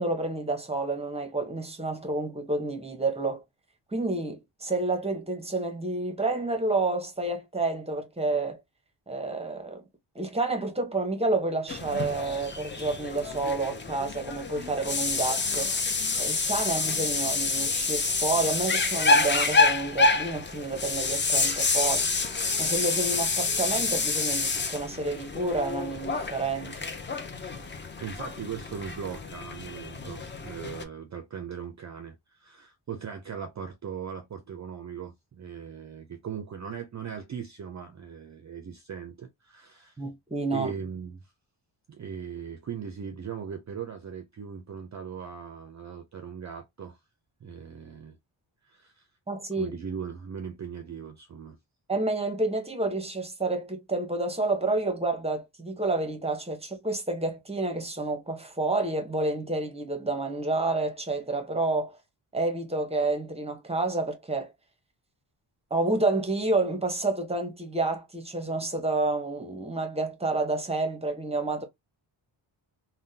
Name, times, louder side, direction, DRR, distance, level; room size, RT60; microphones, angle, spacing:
voice 1, 0.0-3.4 3.9-8.6 9.1-9.8 10.1-15.7 16.2-22.1 22.6-26.8 40.0-40.7 49.3-49.8 51.9-62.0 62.3-64.5 65.7-71.6, right 2 dB, 15° right, 0.8 m, -29 dB
sound 1, 11.7-30.8, left 3 dB, 25° left, 0.5 m, -28 dB
voice 2, 28.0-40.0 40.5-41.2 41.9-47.0 47.4-48.2 48.6-49.1 49.6-51.6, right 7 dB, 40° right, 0.4 m, -39 dB
3.5 x 2.2 x 2.7 m
wide cardioid pair, 130°, 47 cm